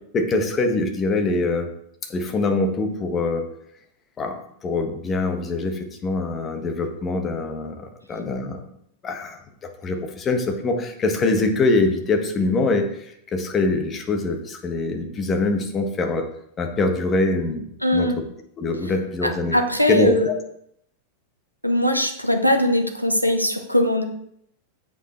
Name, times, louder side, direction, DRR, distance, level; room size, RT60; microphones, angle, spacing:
voice 1, 0.1-1.7 2.1-3.4 4.2-8.6 9.0-9.4 9.8-16.2 16.6-18.1 18.6-19.6 19.9-20.4, left 3 dB, 25° left, 4 dB, 1.4 m, -23 dB
voice 2, 17.8-18.2 19.2-20.3 21.6-24.0, left 1 dB, 90° left, 6 dB, 1.0 m, -20 dB
8.1 x 5.3 x 4.4 m, 0.73 s
figure-of-eight pair, 90°, 0 cm